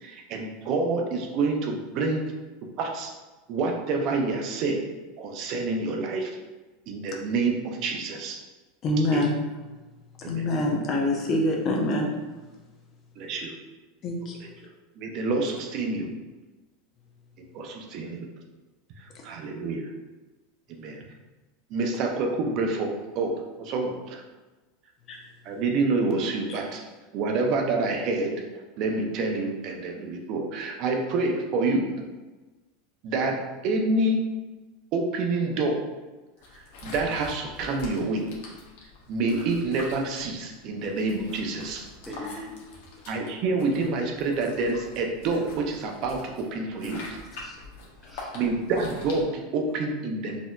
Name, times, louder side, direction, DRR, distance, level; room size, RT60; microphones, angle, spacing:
voice 1, 0.0-2.2 2.8-3.1 3.5-4.8 5.2-6.3 6.9-8.4 9.1-9.3 10.2-10.5 13.2-13.5 14.6-14.7 15.0-16.1 17.5-18.3 19.2-19.9 20.7-21.0 21.7-24.2 25.4-26.8 27.1-28.3 28.8-31.9 33.0-34.2 34.9-35.8 36.8-38.3 39.1-41.8 43.1-47.0 48.3-50.4, right 3 dB, 50° right, 2 dB, 0.6 m, -27 dB
voice 2, 8.8-9.4 10.3-12.1 14.0-14.4 25.1-25.2 26.5-26.6, left 1 dB, 40° left, 0 dB, 0.7 m, -25 dB
sound 1, 36.4-49.2, left 3 dB, 70° left, 0.9 m, -44 dB
voice 3, 42.0-43.2 47.4-47.7 48.0-48.4 49.7-49.8, left 1 dB, ahead, -3 dB, 0.8 m, -43 dB
4.1 x 2.7 x 2.3 m, 1.2 s
supercardioid pair, 115°, 0 cm